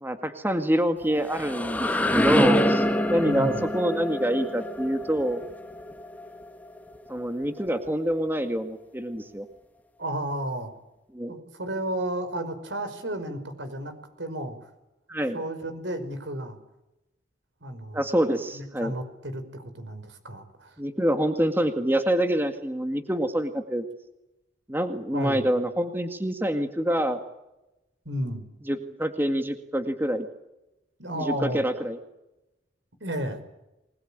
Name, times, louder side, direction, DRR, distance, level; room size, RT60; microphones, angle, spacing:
voice 1, 0.0-5.4 7.1-9.5 11.1-11.4 15.1-15.4 17.9-18.9 20.8-23.9 24.7-27.2 28.7-30.3 31.2-32.0, equal, 10° right, 7 dB, 1.9 m, -26 dB
sound 1, 1.0-6.8, left 1 dB, 10° left, 1.9 m, -26 dB
voice 2, 3.2-3.7 10.0-10.7 11.3-14.7 15.1-16.6 17.6-18.0 18.5-20.8 25.1-25.5 28.1-28.5 31.0-31.6 33.0-33.4, right 1 dB, 85° right, 9 dB, 5.4 m, -33 dB
28.5 x 21.0 x 8.8 m, 0.94 s
head